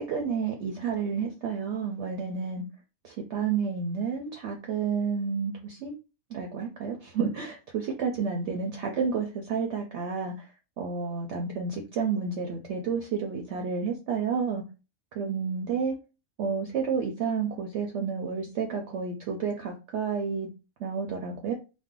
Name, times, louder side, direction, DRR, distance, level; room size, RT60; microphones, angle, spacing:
voice 1, 0.0-2.6 3.0-5.9 6.3-10.3 10.8-14.6 15.2-15.9 16.4-20.5 20.8-21.5, right 6 dB, 65° right, 2 dB, 0.7 m, -30 dB
2.5 x 2.1 x 3.6 m, 0.31 s
omnidirectional pair, 1.5 m